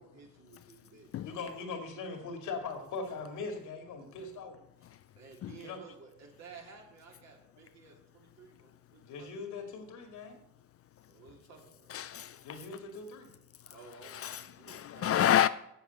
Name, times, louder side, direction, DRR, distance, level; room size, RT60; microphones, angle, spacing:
voice 1, 0.0-1.1 5.2-9.3 11.1-11.9 13.7-15.4, right 5 dB, 60° right, 3.3 m, -54 dB
voice 2, 1.2-4.6 5.6-5.8 9.0-10.4 12.4-13.3, left 4 dB, 80° left, 2.3 m, -40 dB
voice 3, 4.8-5.6 8.4-9.1 11.0-11.3 11.9-12.8 13.5-15.5, left 10 dB, 50° left, 0.4 m, -32 dB
8.2 x 7.5 x 8.0 m
cardioid pair, 90°, 30 cm